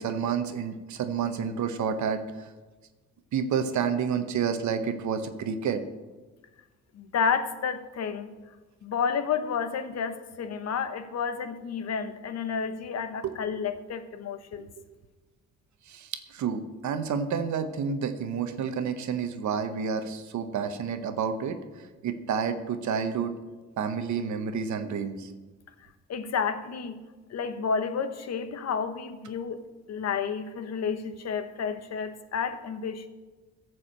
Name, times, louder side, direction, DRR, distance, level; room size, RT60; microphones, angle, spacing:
voice 1, 0.0-2.2 3.3-5.8 13.2-13.6 14.6-14.7 15.9-21.6 22.0-23.3 23.8-25.3, right 6 dB, 70° right, 9 dB, 1.1 m, -29 dB
voice 2, 6.9-8.3 8.8-14.7 26.1-27.0 27.3-29.6 29.9-33.1, left 6 dB, 60° left, 9 dB, 1.0 m, -31 dB
13.5 x 4.9 x 7.3 m, 1.3 s
cardioid pair, 90°, 30 cm